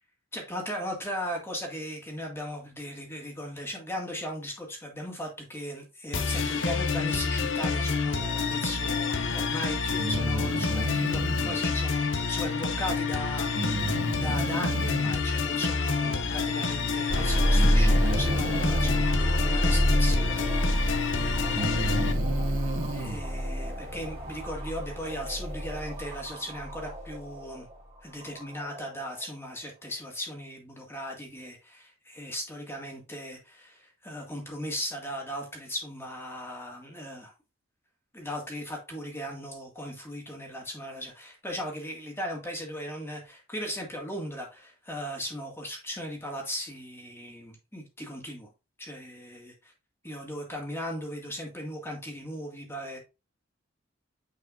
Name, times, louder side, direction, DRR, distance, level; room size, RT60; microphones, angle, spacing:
voice 1, 0.3-13.8 14.2-20.8 21.1-21.9 22.9-27.7 28.0-37.3 38.1-48.5 48.8-49.5 50.0-53.0, equal, 10° left, 2.0 m, -37 dB
sound 1, 6.1-22.1, left 5 dB, 65° left, 0.8 m, -28 dB
Breathing, 10.0-11.6 13.5-15.1 16.5-16.6 17.5-19.1 20.6-20.7 21.4-23.2, right 2 dB, 75° right, 1.3 m, -32 dB
sound 2, 17.1-29.3, equal, 30° right, 3.4 m, -28 dB
9.3 x 4.7 x 2.5 m
head